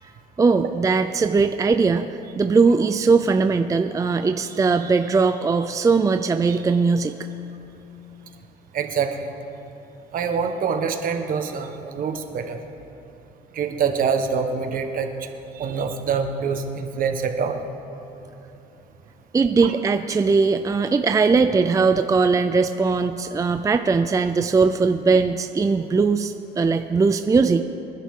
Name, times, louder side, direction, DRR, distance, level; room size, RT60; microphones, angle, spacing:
voice 1, 0.4-2.1 2.4-7.1 19.3-27.6, right 4 dB, 20° right, 8 dB, 0.5 m, -20 dB
voice 2, 8.7-9.3 10.1-12.6 13.5-15.3 15.5-17.6, right 6 dB, 55° right, 6 dB, 1.4 m, -25 dB
25.0 x 11.0 x 3.8 m, 3.0 s
cardioid pair, 110°, 17 cm